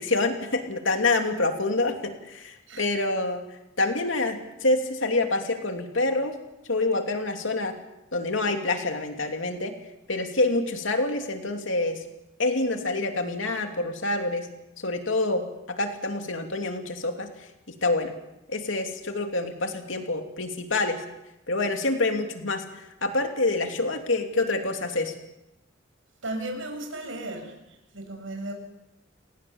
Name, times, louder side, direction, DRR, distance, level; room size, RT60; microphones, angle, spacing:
voice 1, 0.0-3.4 3.8-6.3 6.7-7.7 8.1-9.7 10.1-12.0 12.4-14.5 14.8-17.3 17.8-18.1 18.5-21.0 21.5-25.1, left 2 dB, 75° left, 5 dB, 2.8 m, -27 dB
voice 2, 26.2-27.5 27.9-28.5, right 1 dB, 80° right, 4 dB, 6.6 m, -35 dB
29.5 x 19.0 x 7.1 m, 0.91 s
head